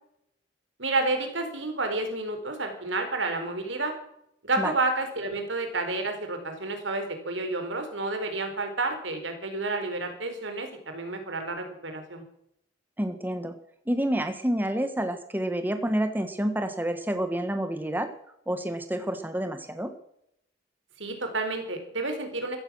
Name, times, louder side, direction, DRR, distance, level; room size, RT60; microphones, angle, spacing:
voice 1, 0.8-3.9 4.4-10.7 10.9-12.2 21.0-22.6, right 2 dB, 85° right, 6 dB, 4.2 m, -30 dB
voice 2, 13.0-13.5 13.9-18.1 18.5-19.9, right 1 dB, 10° right, 8 dB, 1.5 m, -28 dB
15.5 x 14.5 x 6.3 m, 0.75 s
head